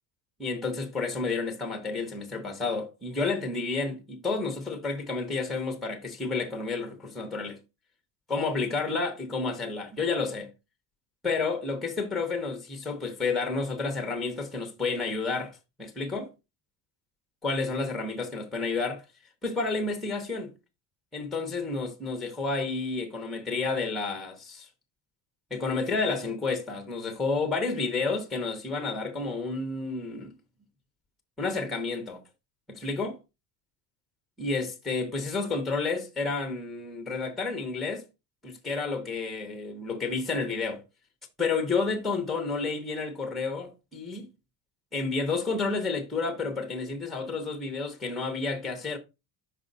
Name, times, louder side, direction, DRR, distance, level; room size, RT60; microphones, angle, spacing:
voice 1, 0.4-7.6 8.3-10.5 11.2-16.3 17.4-19.0 19.4-20.5 21.1-24.7 25.5-30.3 31.4-32.2 32.7-33.2 34.4-38.0 38.4-40.8 41.4-44.3 44.9-49.0, left 4 dB, ahead, 0.8 m, -30 dB
5.4 x 5.2 x 3.9 m
cardioid pair, 180°, 48 cm